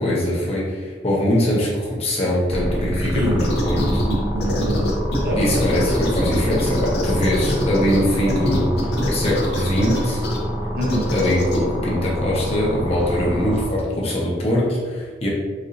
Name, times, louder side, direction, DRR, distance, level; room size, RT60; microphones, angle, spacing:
voice 1, 0.0-4.0 5.4-8.7 9.1-10.2 11.0-15.3, left 1 dB, 35° left, -5 dB, 0.9 m, -22 dB
sound 1, 2.5-13.7, equal, 15° right, 0.6 m, -27 dB
sound 2, 3.4-4.1 4.4-8.0 8.3-10.4 10.8-11.6, left 1 dB, 65° left, 0.7 m, -24 dB
voice 2, 3.7-4.9 5.2-5.6 10.7-11.1, equal, 60° right, -2 dB, 0.7 m, -25 dB
4.2 x 2.6 x 2.6 m, 1.5 s
head